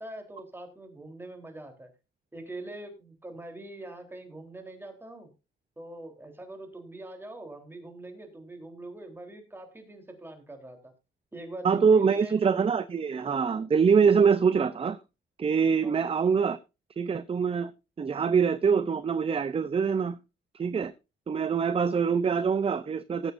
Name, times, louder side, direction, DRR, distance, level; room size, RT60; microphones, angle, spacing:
voice 1, 0.0-1.9 2.3-5.3 5.8-10.9 11.3-12.4 15.8-16.0, right 1 dB, 10° right, 3.7 m, -43 dB
voice 2, 11.6-15.0 15.4-16.6 17.0-17.7 18.0-20.2 20.5-20.9 21.3-23.3, right 6 dB, 30° right, 0.6 m, -24 dB
19.0 x 8.1 x 2.6 m
cardioid pair, 90°, 20 cm